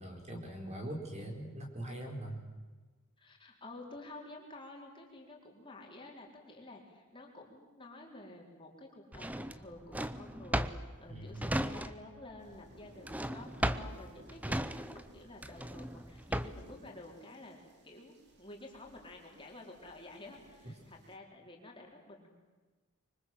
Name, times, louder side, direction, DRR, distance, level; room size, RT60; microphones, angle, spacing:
voice 1, 0.0-2.4 11.1-11.4, right 1 dB, 30° right, 3 dB, 4.5 m, -42 dB
voice 2, 3.2-22.3, left 2 dB, 20° left, 0 dB, 4.3 m, -51 dB
Drawer open or close, 9.1-12.2 12.5-16.7, right 1 dB, 5° right, 0.7 m, -36 dB
sound 1, 12.4-21.2, right 1 dB, 50° right, 2.9 m, -60 dB
26.0 x 24.5 x 7.8 m, 1.3 s
head